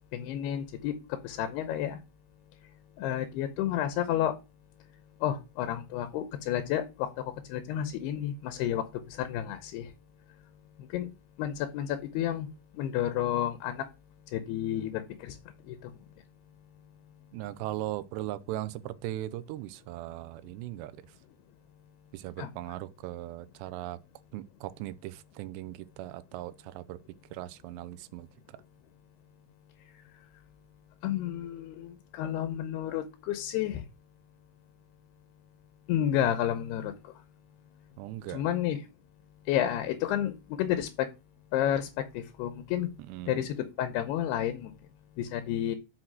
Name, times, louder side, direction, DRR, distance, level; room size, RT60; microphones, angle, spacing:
voice 1, 0.1-0.9 1.2-2.0 3.0-4.3 5.2-7.1 7.5-8.8 9.2-9.9 10.9-11.1 11.4-12.5 12.8-13.8 14.3-15.4 15.7-15.8 22.4-22.5 31.0-33.8 35.9-36.9 38.3-38.8 39.5-40.9 41.5-41.9 42.1-42.9 43.3-44.7 45.2-45.8, left 11 dB, 80° left, 2.7 m, -30 dB
voice 2, 17.3-21.2 22.1-24.0 24.3-27.0 27.3-28.6 38.0-38.5 43.0-43.4, right 15 dB, 85° right, 2.7 m, -39 dB
6.4 x 5.8 x 6.0 m
omnidirectional pair, 4.9 m